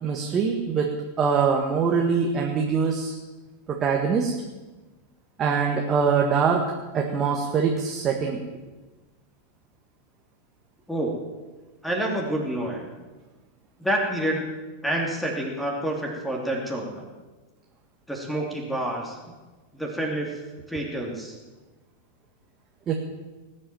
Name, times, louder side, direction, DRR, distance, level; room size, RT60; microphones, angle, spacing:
voice 1, 0.0-3.1 3.7-4.3 5.4-6.6 6.9-8.4 22.9-23.0, right 6 dB, 25° right, 1 dB, 1.7 m, -23 dB
voice 2, 11.8-12.9 13.8-14.4 14.8-17.0 18.1-19.4 19.7-20.3 20.7-21.3, right 1 dB, 5° left, 0 dB, 2.8 m, -28 dB
19.0 x 8.5 x 7.7 m, 1.2 s
figure-of-eight pair, 90°, 0 cm